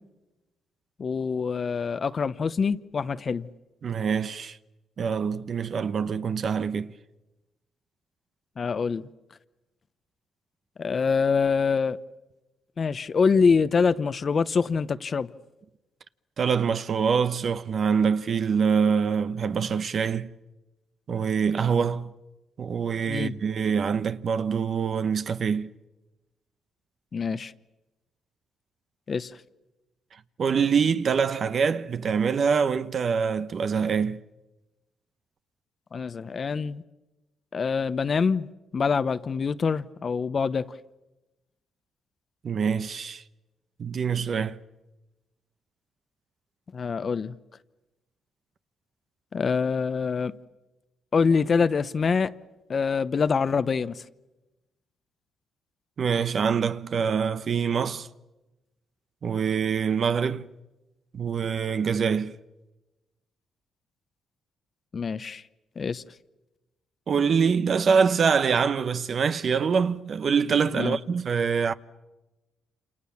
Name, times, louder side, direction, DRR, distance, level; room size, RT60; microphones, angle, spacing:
voice 1, 1.0-3.5 8.6-9.1 10.8-12.0 12.8-15.3 23.1-23.3 27.1-27.5 29.1-29.3 35.9-36.8 37.5-38.5 38.7-40.7 46.7-47.3 49.3-50.3 51.1-52.3 52.7-54.0 64.9-65.4 65.8-66.0 70.7-71.0, left 5 dB, 40° left, 0.9 m, -25 dB
voice 2, 3.8-4.6 5.0-6.9 16.4-20.3 21.1-22.1 22.6-25.7 30.4-34.2 42.4-43.2 43.8-44.6 56.0-58.1 59.2-60.5 61.1-62.4 67.1-71.7, right 6 dB, 50° right, 1.0 m, -25 dB
29.0 x 28.0 x 7.2 m
cardioid pair, 90°, 0 cm